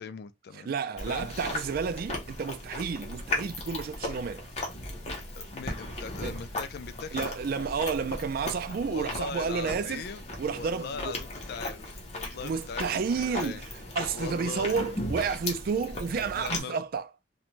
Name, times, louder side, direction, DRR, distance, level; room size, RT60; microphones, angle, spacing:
voice 1, 0.0-0.7 1.1-1.3 5.2-7.3 8.9-10.2 10.5-13.6 14.1-14.8 16.3-16.8, left 5 dB, 60° left, 0.4 m, -40 dB
voice 2, 0.5-4.5 6.2-6.4 7.1-10.0 10.4-11.2 12.3-13.6 14.0-17.1, right 5 dB, 55° right, 0.3 m, -31 dB
Chewing mastication, 1.0-16.6, left 1 dB, 35° left, 0.9 m, -37 dB
2.5 x 2.2 x 3.0 m
head